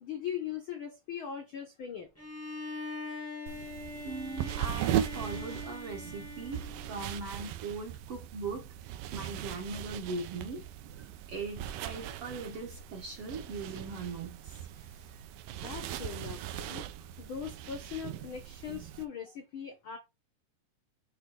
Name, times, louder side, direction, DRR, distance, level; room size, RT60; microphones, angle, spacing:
voice 1, 0.0-2.1 15.5-16.9 17.2-20.0, left 8 dB, 75° left, 1.1 m, -40 dB
Bowed string instrument, 2.2-7.2, left 2 dB, 20° left, 0.3 m, -42 dB
sound 1, 3.5-19.0, right 11 dB, 80° right, 2.2 m, -39 dB
voice 2, 4.0-8.7 9.1-10.6 11.0-15.1 16.4-16.5, right 3 dB, 65° right, 1.5 m, -40 dB
8.2 x 3.0 x 3.8 m
omnidirectional pair, 3.8 m